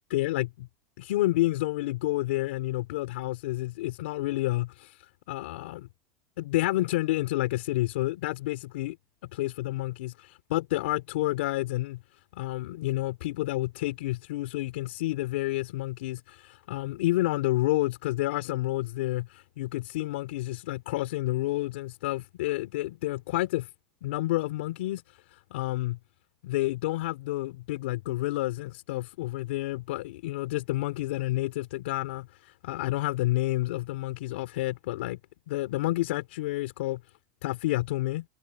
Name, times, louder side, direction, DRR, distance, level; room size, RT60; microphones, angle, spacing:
voice 1, 0.1-0.7 1.0-5.9 6.4-9.0 9.3-12.0 12.3-23.7 24.0-25.0 25.3-26.0 26.4-35.2 35.5-37.0 37.4-38.3, left 17 dB, 80° left, 4.6 m, -29 dB
supercardioid pair, 175°, 6 cm